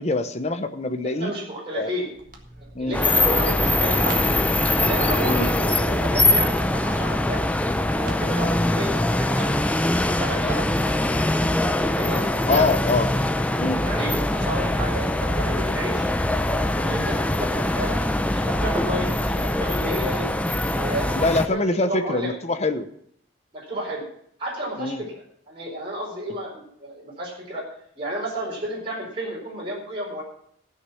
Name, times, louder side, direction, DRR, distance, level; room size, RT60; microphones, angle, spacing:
voice 1, 0.0-1.3 1.7-1.9 2.7-3.0 5.2-5.5 12.5-13.1 13.6-13.8 21.1-22.9 24.8-25.0, left 3 dB, 30° left, 8 dB, 0.8 m, -24 dB
voice 2, 1.1-2.1 2.8-4.4 4.8-7.4 8.0-9.5 10.0-11.3 11.8-12.6 13.8-16.1 16.7-20.3 20.7-22.3 23.5-24.0 24.4-27.7 28.0-30.2, right 1 dB, 25° right, -5 dB, 4.7 m, -32 dB
Walk footsteps, 2.1-8.6, right 2 dB, 45° right, 1.8 m, -41 dB
sound 1, 2.9-21.5, left 1 dB, 5° left, 0.5 m, -22 dB
14.5 x 6.5 x 6.9 m, 0.67 s
head